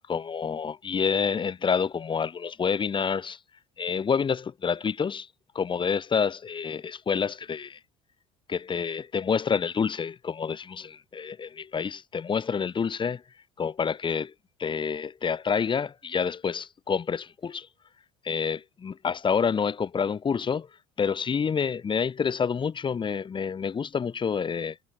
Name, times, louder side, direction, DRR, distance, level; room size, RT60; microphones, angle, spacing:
voice 1, 0.1-3.4 3.8-5.3 5.5-7.8 8.5-13.2 13.6-14.3 14.6-17.7 18.2-20.7 21.0-24.8, left 6 dB, 25° left, 1.4 m, -28 dB
figure-of-eight pair, 60°, 18 cm